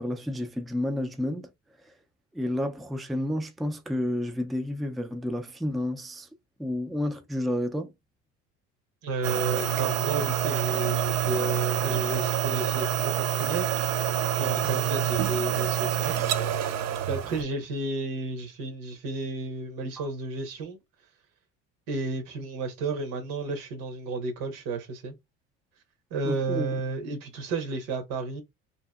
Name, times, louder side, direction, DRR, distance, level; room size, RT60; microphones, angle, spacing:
voice 1, 0.0-1.5 2.3-6.3 6.6-7.9 20.0-20.1 26.2-26.8, left 1 dB, ahead, 0.3 m, -30 dB
voice 2, 9.0-13.7 14.3-16.1 17.1-20.8 21.9-25.1 26.1-28.4, right 3 dB, 85° right, 1.0 m, -32 dB
sound 1, 9.2-17.4, right 10 dB, 60° right, 0.5 m, -27 dB
2.7 x 2.5 x 2.3 m
cardioid pair, 105°, 30 cm